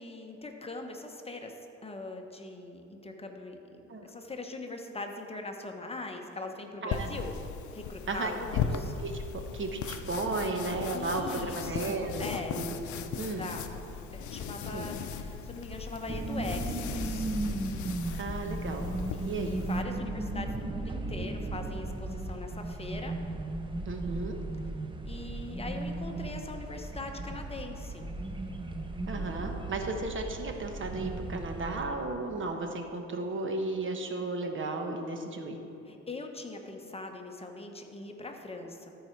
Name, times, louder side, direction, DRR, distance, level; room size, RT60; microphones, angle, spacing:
voice 1, 0.0-1.6 1.8-7.4 7.7-8.9 10.9-12.6 13.2-13.8 14.1-17.3 19.1-23.1 25.0-28.0 35.9-38.9, left 2 dB, 20° left, 3 dB, 0.9 m, -41 dB
sound 1, 6.9-19.8, left 6 dB, 75° left, 0.6 m, -38 dB
voice 2, 8.7-12.7 13.2-13.5 14.7-14.9 18.1-18.9 19.2-19.6 23.9-24.4 29.1-35.6, right 3 dB, 40° right, 4 dB, 1.1 m, -34 dB
sound 2, 16.1-31.8, right 2 dB, 15° right, 0.7 m, -36 dB
13.5 x 4.9 x 4.5 m, 2.8 s
cardioid pair, 90°, 30 cm